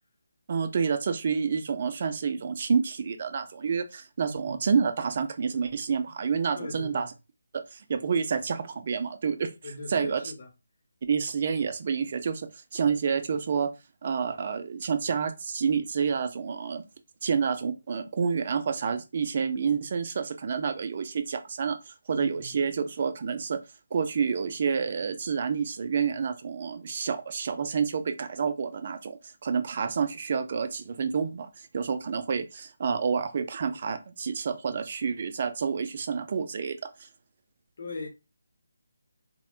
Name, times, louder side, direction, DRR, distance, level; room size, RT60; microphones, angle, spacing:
voice 1, 0.5-7.1 7.5-9.5 9.9-10.2 11.1-13.7 14.0-16.8 17.2-23.6 23.9-37.1, right 6 dB, 45° right, 0.3 m, -29 dB
voice 2, 4.2-4.6 6.5-7.1 9.6-10.5 22.1-22.6 37.8-38.1, left 2 dB, 55° left, 0.9 m, -40 dB
2.7 x 2.1 x 2.3 m
figure-of-eight pair, 160°, 0 cm